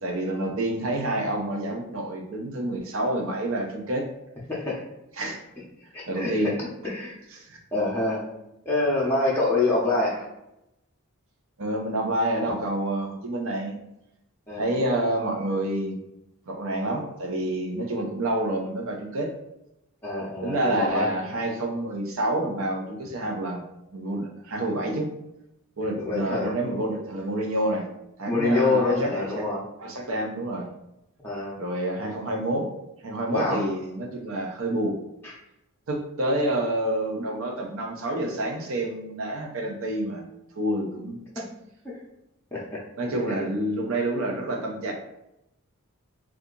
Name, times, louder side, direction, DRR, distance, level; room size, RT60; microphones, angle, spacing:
voice 1, 0.0-4.1 5.2-5.4 6.1-6.6 7.3-7.6 11.6-13.7 14.5-16.0 16.5-19.3 20.4-23.6 23.9-25.1 25.8-27.9 28.2-29.5 29.8-30.7 31.6-32.7 33.0-35.0 35.9-40.3 40.6-41.4 43.0-44.9, right 1 dB, 70° right, 2 dB, 0.6 m, -28 dB
voice 2, 4.5-4.8 5.9-6.5 6.8-7.1 7.7-8.2 8.7-10.3 14.5-14.7 20.0-21.1 25.9-26.6 28.3-29.7 31.2-31.6 33.3-33.7 35.2-35.3 41.4-41.5 41.8-42.0 42.5-42.8 43.3-43.5, left 2 dB, 10° left, -7 dB, 0.6 m, -26 dB
2.8 x 2.4 x 3.7 m, 0.86 s
head